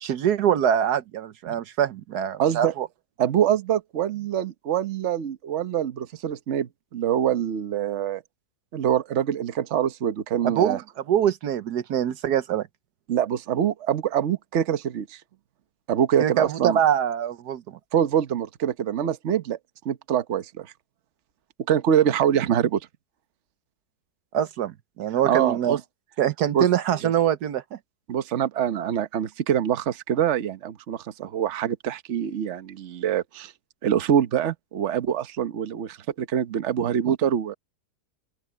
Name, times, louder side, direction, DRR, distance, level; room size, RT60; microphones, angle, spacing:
voice 1, 0.0-2.9 10.4-10.8 11.1-12.7 16.2-17.8 24.3-25.8 26.2-27.8, right 9 dB, 80° right, 1.4 m, -24 dB
voice 2, 2.4-2.7 3.2-8.2 8.7-10.8 13.1-15.2 15.9-16.8 17.9-19.6 19.8-20.7 21.7-22.8 25.2-25.8 26.5-26.7 27.0-27.1 28.1-33.5 33.8-37.5, right 9 dB, 50° right, 1.2 m, -24 dB
open air
omnidirectional pair, 1.7 m